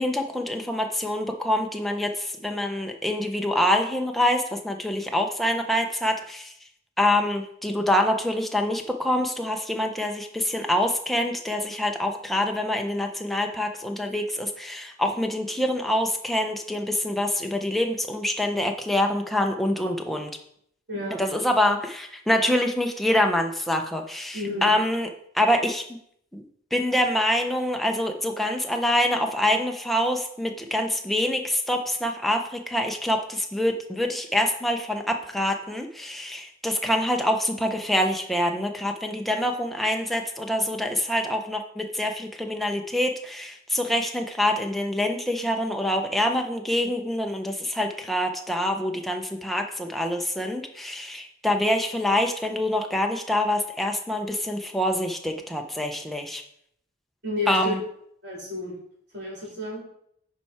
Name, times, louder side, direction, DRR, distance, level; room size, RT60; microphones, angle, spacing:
voice 1, 0.0-6.5 7.0-20.3 21.2-25.1 25.3-26.0 26.3-26.4 26.7-56.4 57.5-57.8, left 1 dB, ahead, 3 dB, 0.7 m, -25 dB
voice 2, 20.9-21.2 24.3-24.7 57.2-57.7 58.2-58.7 59.1-59.8, left 1 dB, 55° right, -4 dB, 3.8 m, -31 dB
10.0 x 4.7 x 4.3 m, 0.70 s
head